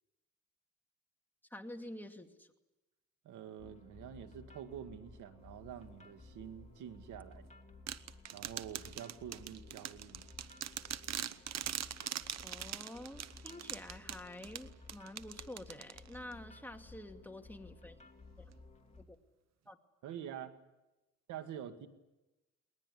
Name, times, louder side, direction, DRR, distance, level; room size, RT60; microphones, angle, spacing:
voice 1, 1.5-2.5 12.4-18.0 18.4-18.5 19.0-19.2 19.7-19.8, left 1 dB, 5° left, 4 dB, 2.5 m, -48 dB
voice 2, 3.2-7.5 8.3-10.2 20.0-20.6 21.3-21.9, right 9 dB, 85° right, 8 dB, 2.1 m, -47 dB
sound 1, 3.6-19.0, left 3 dB, 25° left, 2.7 m, -56 dB
sound 2, 7.9-16.3, right 10 dB, 60° right, 1.1 m, -42 dB
20.5 x 20.5 x 9.9 m, 1.0 s
cardioid pair, 90°, 30 cm